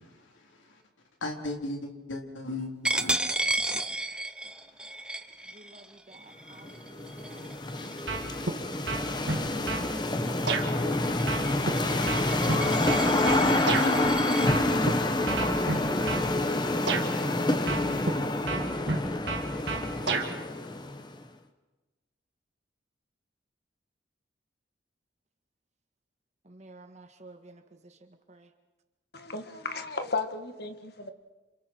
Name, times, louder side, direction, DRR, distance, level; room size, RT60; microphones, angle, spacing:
voice 1, 1.2-3.1 3.7-3.8, left 2 dB, 80° left, 2 dB, 3.8 m, -35 dB
Coin (dropping), 2.8-8.2 8.7-9.0 9.4-14.5, right 1 dB, 5° right, 0.7 m, -34 dB
voice 2, 5.5-7.6 9.3-12.2 15.4-18.0 18.5-19.3 26.4-28.5, right 2 dB, 35° right, 6 dB, 1.7 m, -50 dB
sound 1, 6.6-21.1, left 2 dB, 20° left, 1.2 m, -27 dB
sound 2, 8.1-8.6 8.9-9.9 10.5-10.7 11.3-13.9 14.5-14.9 15.3-16.3 16.9-17.1 17.7-18.2 18.5-20.3, right 3 dB, 65° right, 2.4 m, -30 dB
voice 3, 29.1-31.1, left 3 dB, 55° left, 7 dB, 1.8 m, -34 dB
29.5 x 27.5 x 4.5 m, 1.1 s
head